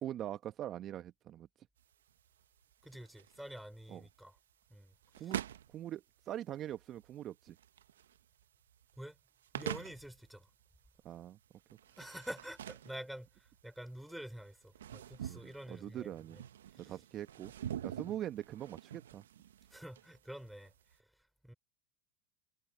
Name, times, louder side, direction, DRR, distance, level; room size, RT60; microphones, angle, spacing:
voice 1, 0.0-1.5 3.9-4.0 5.2-5.4 5.7-7.6 11.0-11.4 15.3-16.4 16.8-17.5 17.8-19.2, right 12 dB, 40° right, 1.0 m, -42 dB
sound 1, 1.8-21.0, right 10 dB, 80° right, 1.0 m, -47 dB
voice 2, 2.8-4.4 4.7-5.4 9.0-9.2 9.5-10.5 12.0-16.1 16.7-16.9 17.9-18.0 19.7-20.7 21.0-21.1 21.4-21.5, right 1 dB, ahead, 4.5 m, -48 dB
hypercardioid pair, 90°, 0 cm